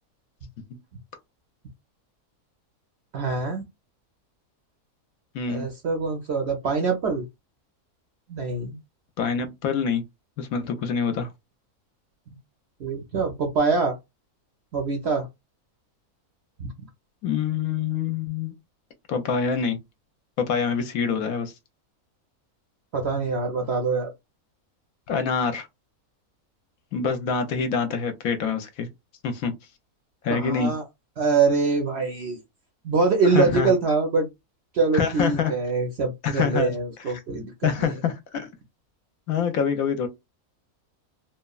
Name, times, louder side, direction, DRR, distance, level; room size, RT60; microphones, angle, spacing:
voice 1, 3.1-3.6 5.5-7.2 8.3-8.8 12.8-14.0 14.7-15.3 16.6-16.7 22.9-24.1 30.3-30.8 31.2-32.4 32.8-34.3 34.7-38.0, right 4 dB, 60° right, 0.7 m, -24 dB
voice 2, 5.3-5.7 9.2-10.0 10.4-11.3 17.2-18.5 19.1-19.8 20.4-21.5 25.1-25.7 26.9-28.9 29.2-29.5 30.2-30.7 33.2-33.7 34.9-35.5 36.2-36.7 37.6-38.5 39.3-40.1, left 6 dB, 70° left, 1.0 m, -25 dB
3.0 x 2.1 x 2.3 m
omnidirectional pair, 1.6 m